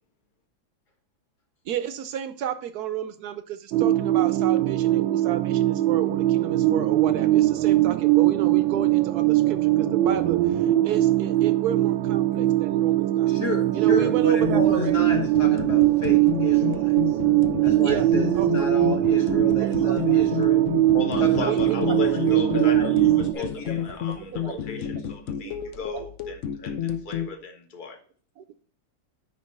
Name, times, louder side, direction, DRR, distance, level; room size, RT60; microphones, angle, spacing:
voice 1, 1.6-13.3 13.7-15.1 17.1-18.1 18.3-18.7 19.5-20.3 21.4-21.9 23.4-23.5 23.9-24.6 25.4-26.1 26.6-26.7 28.4-28.5, right 9 dB, 65° right, 1.1 m, -32 dB
sound 1, 3.7-23.3, right 14 dB, 85° right, 1.4 m, -21 dB
voice 2, 13.3-17.0 17.6-20.6 21.2-21.5 21.8-22.9 23.3-23.9, left 2 dB, 55° left, 2.0 m, -32 dB
sound 2, 14.4-27.3, left 9 dB, 75° left, 0.6 m, -31 dB
voice 3, 20.9-28.0, left 4 dB, 30° left, 1.1 m, -36 dB
9.7 x 3.8 x 5.4 m
omnidirectional pair, 2.1 m